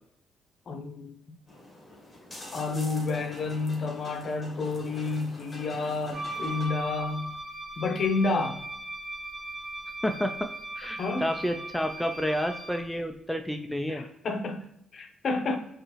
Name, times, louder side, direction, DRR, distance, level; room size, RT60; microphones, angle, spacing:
voice 1, 0.7-1.4 2.5-7.3 7.8-8.6 11.0-11.3 13.9-15.6, left 3 dB, 50° left, 6 dB, 0.6 m, -30 dB
sound 1, 1.5-6.7, left 1 dB, 20° left, 1.5 m, -45 dB
Wind instrument woodwind instrument, 6.1-12.9, right 1 dB, 30° right, 0.7 m, -38 dB
voice 2, 10.8-14.1, equal, 5° left, 5 dB, 0.3 m, -30 dB
5.2 x 2.5 x 2.9 m, 0.79 s
cardioid pair, 90°, 0 cm